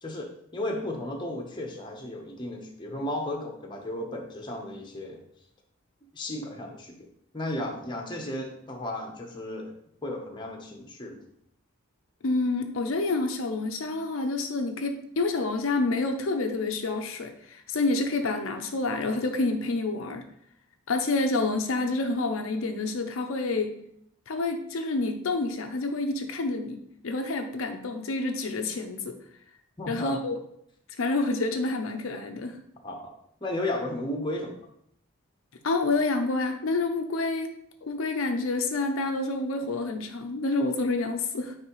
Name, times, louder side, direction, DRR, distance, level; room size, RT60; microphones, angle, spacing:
voice 1, 0.0-5.2 6.1-6.9 7.3-9.7 10.0-11.2 29.8-30.2 32.8-33.1 33.4-34.5, left 1 dB, 20° left, 1 dB, 0.9 m, -34 dB
voice 2, 12.2-20.2 20.9-23.7 24.3-29.2 29.9-30.4 31.0-32.6 35.6-37.5 37.9-41.6, left 3 dB, 65° left, 4 dB, 0.5 m, -28 dB
9.3 x 3.3 x 3.1 m, 0.72 s
head